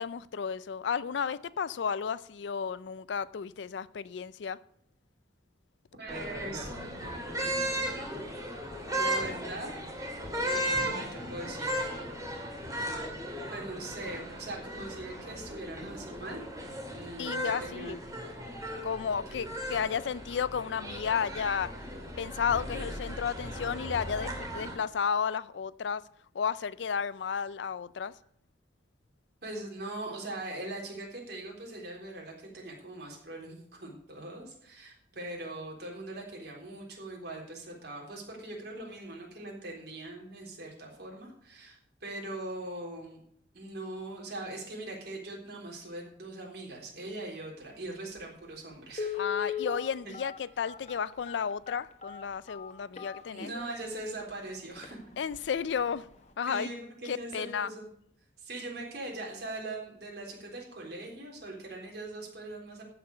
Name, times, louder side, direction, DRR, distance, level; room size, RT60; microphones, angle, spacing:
voice 1, 0.0-4.6 17.2-18.0 18.8-21.7 22.2-26.0 26.3-28.1 49.1-53.5 55.2-56.1 56.4-56.7 57.1-57.7, left 7 dB, 70° left, 0.4 m, -32 dB
voice 2, 6.0-6.7 7.0-7.6 9.0-9.7 10.4-11.7 12.0-12.1 13.5-16.4 16.9-18.0 19.3-19.5 29.4-43.2 43.5-49.5 50.0-50.1 53.3-55.0 56.5-57.9 58.4-62.8, right 2 dB, 60° right, 3.7 m, -41 dB
sound 1, 6.1-24.7, equal, 20° right, 2.4 m, -36 dB
Telephone, 48.2-48.3 48.9-53.8 54.3-54.4 54.8-54.9 55.3-55.6 55.9-56.0, left 7 dB, 40° left, 1.2 m, -38 dB
15.0 x 5.9 x 6.6 m
head